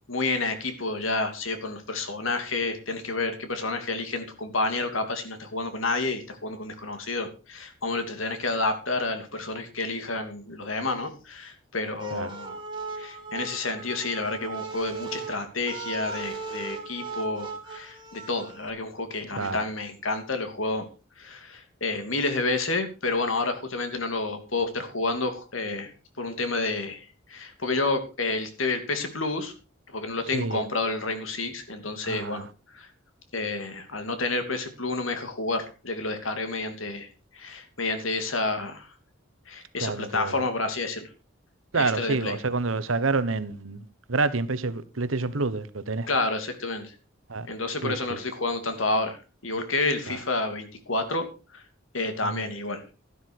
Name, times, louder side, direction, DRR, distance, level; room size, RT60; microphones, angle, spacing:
voice 1, 0.1-12.6 13.0-20.8 21.2-25.9 26.2-29.5 29.9-32.4 32.7-32.9 33.3-37.1 37.3-38.9 39.5-41.0 41.7-42.4 46.1-46.9 47.5-49.2 49.4-51.3 51.5-51.6 51.9-52.8, left 3 dB, 80° left, 2.9 m, -29 dB
sound 1, 12.0-18.7, right 4 dB, 25° right, 3.7 m, -37 dB
voice 2, 30.3-30.6 32.0-32.5 39.8-40.4 41.7-43.8 44.1-46.1 47.3-47.5 47.8-48.2 50.1-50.2 52.2-52.4, right 3 dB, 80° right, 1.3 m, -28 dB
13.0 x 12.0 x 4.7 m
head